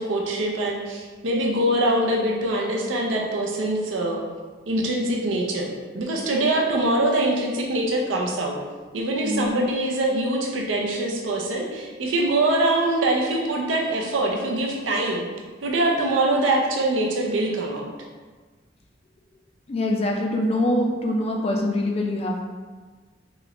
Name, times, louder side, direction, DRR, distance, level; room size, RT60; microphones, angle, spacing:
voice 1, 0.0-4.2 4.7-5.7 5.9-8.6 8.9-15.2 15.6-17.9, right 1 dB, 85° right, 0 dB, 0.5 m, -23 dB
voice 2, 19.7-22.4, left 1 dB, 30° left, 1 dB, 0.3 m, -24 dB
3.0 x 2.4 x 3.0 m, 1.4 s
head